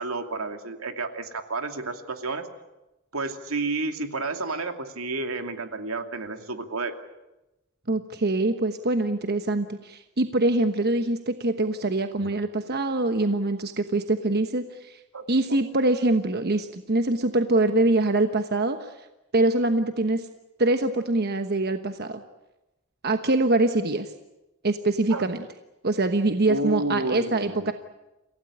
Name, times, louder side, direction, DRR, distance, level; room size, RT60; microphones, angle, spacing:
voice 1, 0.0-2.5 3.1-6.9 12.2-12.4 15.1-15.6 25.1-25.3 26.5-27.7, right 3 dB, 80° right, 6 dB, 2.5 m, -31 dB
voice 2, 7.9-15.0 15.3-19.1 19.3-20.3 20.6-22.2 23.0-24.1 24.6-25.4 25.8-27.7, right 2 dB, 50° right, 8 dB, 1.2 m, -24 dB
28.0 x 17.0 x 10.0 m, 0.99 s
head